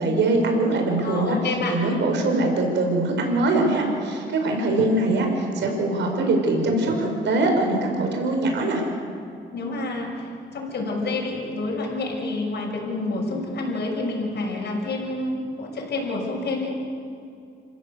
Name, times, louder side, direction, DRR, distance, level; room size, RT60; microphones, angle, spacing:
voice 1, 0.0-1.4 1.7-8.9, right 2 dB, 65° right, 2 dB, 5.5 m, -22 dB
voice 2, 1.0-1.8 9.5-16.7, left 2 dB, 55° left, -2 dB, 6.4 m, -28 dB
26.5 x 15.5 x 8.3 m, 2.5 s
cardioid pair, 90°, 20 cm